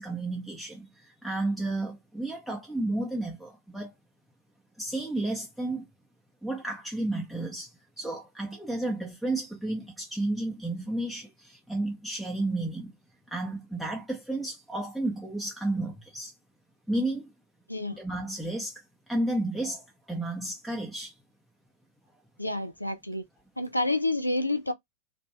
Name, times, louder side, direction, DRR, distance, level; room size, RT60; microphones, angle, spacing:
voice 1, 0.0-3.9 4.8-5.9 6.4-7.7 8.0-12.9 13.3-16.3 16.9-17.3 17.9-18.8 19.1-21.1, right 2 dB, ahead, 0.7 m, -32 dB
voice 2, 22.4-23.3 23.6-24.7, left 2 dB, 85° left, 0.3 m, -29 dB
2.5 x 2.1 x 2.9 m
figure-of-eight pair, 90°, 0 cm